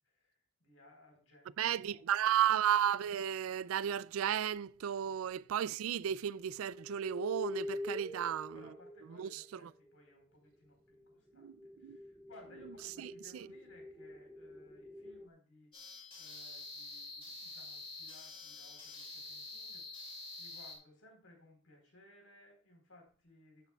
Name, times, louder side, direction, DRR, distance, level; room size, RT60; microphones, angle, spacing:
voice 1, 0.0-2.2 5.0-5.2 8.1-15.7 16.2-23.7, left 1 dB, 75° left, 3.8 m, -62 dB
sound 1, 1.6-3.3 4.9-5.0 6.3-10.0 10.9-15.3, left 1 dB, ahead, 0.4 m, -47 dB
voice 2, 1.6-8.6 9.2-9.6 11.4-11.6 11.8-12.0 13.0-13.1, right 10 dB, 80° right, 0.3 m, -33 dB
sound 2, 15.7-20.8, left 3 dB, 25° left, 2.3 m, -47 dB
12.0 x 8.4 x 2.3 m
head